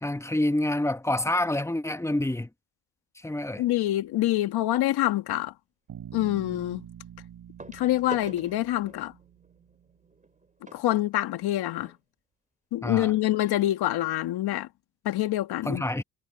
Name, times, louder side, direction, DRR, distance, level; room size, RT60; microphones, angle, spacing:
voice 1, 0.0-2.5 3.2-3.6 12.8-13.1 15.6-16.0, left 1 dB, 5° left, 1.3 m, -27 dB
voice 2, 3.6-5.5 6.1-6.8 7.7-9.1 10.7-11.9 12.7-14.7 15.0-15.9, left 14 dB, 75° left, 2.0 m, -26 dB
sound 1, 4.0-4.3 6.0-6.1 7.6-12.0 12.8-12.9 13.1-13.3 13.8-13.9, right 3 dB, 20° right, 5.3 m, -47 dB
Bass guitar, 5.9-9.9, right 9 dB, 65° right, 3.6 m, -46 dB
supercardioid pair, 60°, 39 cm